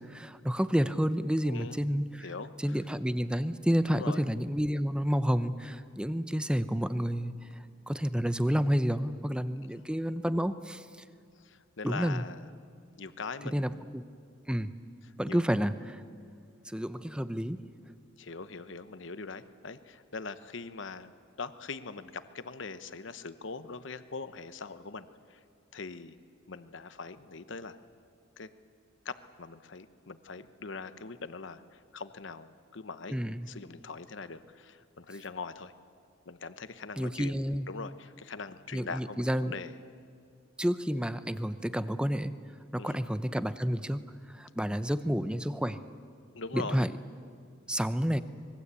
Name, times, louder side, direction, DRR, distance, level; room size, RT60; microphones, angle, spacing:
voice 1, 0.0-2.3 2.6-7.3 7.9-10.8 11.8-12.2 13.4-14.0 14.5-14.7 15.2-16.0 16.7-17.6 33.1-33.5 37.0-37.6 38.7-39.5 40.6-42.3 42.7-45.8 46.5-46.9 47.7-48.2, equal, 5° right, 12 dB, 0.7 m, -30 dB
voice 2, 1.4-1.8 2.2-2.8 3.9-4.2 11.4-12.5 13.0-13.8 15.0-15.4 18.2-21.1 21.4-25.4 25.7-26.2 26.5-27.8 28.4-28.5 29.0-35.7 36.3-37.4 37.7-39.7 42.8-43.1 46.3-46.9, left 4 dB, 65° left, 12 dB, 1.0 m, -42 dB
25.0 x 21.5 x 8.4 m, 2.3 s
head